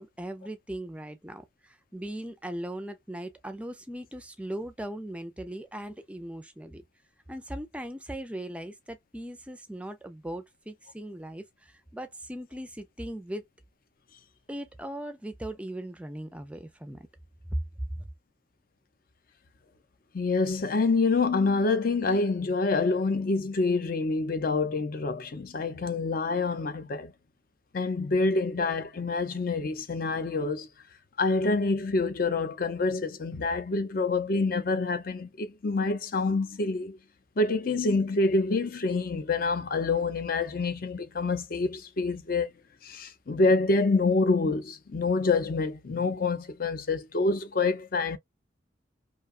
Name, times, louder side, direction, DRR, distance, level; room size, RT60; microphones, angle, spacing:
voice 1, 0.0-6.8 7.3-13.5 14.5-17.1 17.5-17.6 17.9-18.0, right 1 dB, 5° right, 0.4 m, -38 dB
voice 2, 20.1-27.1 27.7-30.7 31.2-37.0 37.4-42.5 42.8-48.2, left 3 dB, 50° left, 0.5 m, -27 dB
2.7 x 2.2 x 2.4 m
head